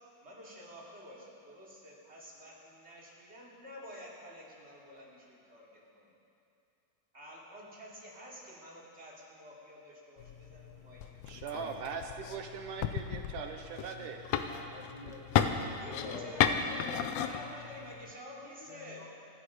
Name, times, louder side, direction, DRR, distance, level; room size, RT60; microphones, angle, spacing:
voice 1, 0.2-6.1 7.1-11.3 15.8-19.1, equal, 20° right, -5 dB, 2.7 m, -50 dB
sound 1, 10.2-18.1, left 8 dB, 85° left, 1.4 m, -34 dB
voice 2, 11.3-14.3, right 6 dB, 75° right, 4 dB, 2.3 m, -40 dB
voice 3, 14.5-15.6 15.9-16.5 18.6-19.1, left 3 dB, 60° left, -2 dB, 1.2 m, -47 dB
26.0 x 11.0 x 4.9 m, 2.8 s
omnidirectional pair, 3.8 m